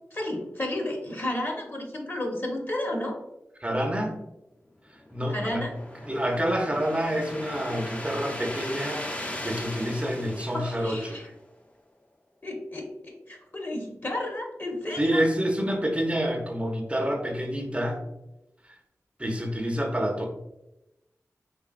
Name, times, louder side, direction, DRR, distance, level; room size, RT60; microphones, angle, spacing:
voice 1, 0.1-3.2 5.3-5.7 10.3-11.3 12.4-15.2, left 1 dB, 40° left, 1 dB, 1.0 m, -32 dB
voice 2, 3.6-4.2 4.9-5.7 6.0-11.2 15.0-18.0 19.2-20.3, equal, 20° right, 1 dB, 0.6 m, -28 dB
sound 1, 4.9-11.4, left 1 dB, 25° left, 0.5 m, -38 dB
3.9 x 3.2 x 2.4 m, 0.92 s
wide cardioid pair, 50°, 6 cm